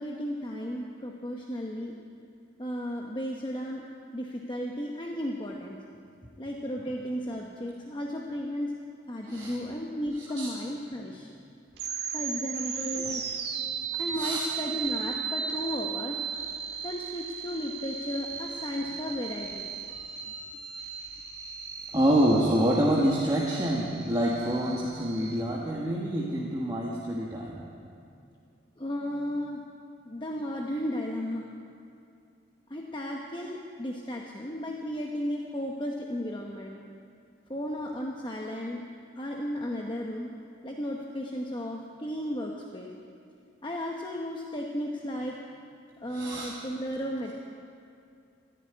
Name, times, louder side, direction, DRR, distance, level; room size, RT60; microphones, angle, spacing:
voice 1, 0.0-2.0 2.6-3.8 4.1-5.8 6.4-8.7 9.1-11.3 12.1-13.2 13.9-16.2 16.8-19.7 27.5-27.6 28.8-29.6 30.0-31.4 32.7-36.8 37.5-38.8 39.2-40.3 40.6-42.9 43.6-45.4 46.0-47.3, equal, 25° left, -1 dB, 1.0 m, -34 dB
voice 2, 9.2-9.5 10.4-10.5 12.9-13.1 14.1-14.5 21.9-27.7 46.1-46.5, right 1 dB, 20° right, -5 dB, 1.4 m, -27 dB
sound 1, 11.7-25.4, right 6 dB, 55° right, 1.7 m, -36 dB
14.0 x 10.5 x 9.5 m, 2.4 s
head